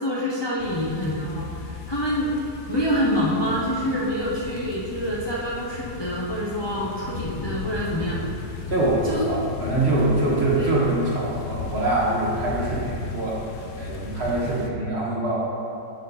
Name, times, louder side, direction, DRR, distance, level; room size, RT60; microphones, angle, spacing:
voice 1, 0.0-2.3 2.7-8.5 9.0-9.2 10.5-10.7, equal, 30° left, -6 dB, 0.5 m, -26 dB
sound 1, 0.6-14.7, left 4 dB, 65° left, 0.8 m, -35 dB
voice 2, 8.7-15.3, right 2 dB, 40° right, -5 dB, 1.5 m, -24 dB
12.0 x 4.3 x 4.0 m, 2.8 s
omnidirectional pair, 1.8 m